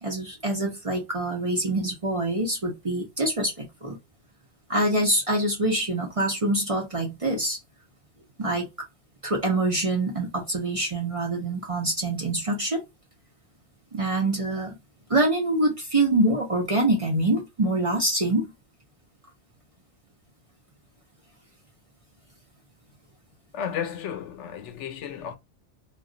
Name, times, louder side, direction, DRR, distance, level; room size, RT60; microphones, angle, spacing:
voice 1, 0.0-4.0 4.7-7.6 8.4-8.7 9.2-12.8 13.9-14.7 15.1-18.5, right 2 dB, 35° right, 0.7 m, -25 dB
voice 2, 23.5-25.3, left 8 dB, 75° left, 0.9 m, -33 dB
2.3 x 2.2 x 3.7 m
omnidirectional pair, 1.2 m